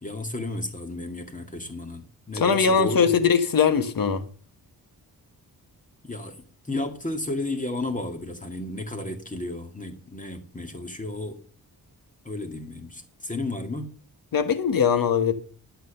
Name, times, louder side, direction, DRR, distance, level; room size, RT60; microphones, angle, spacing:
voice 1, 0.0-3.1 6.0-6.4 6.7-11.4 12.2-13.9, left 2 dB, 20° left, 2.0 m, -33 dB
voice 2, 2.3-4.2 14.3-15.3, left 6 dB, 60° left, 1.5 m, -21 dB
11.0 x 6.8 x 6.6 m
cardioid pair, 85°, 38 cm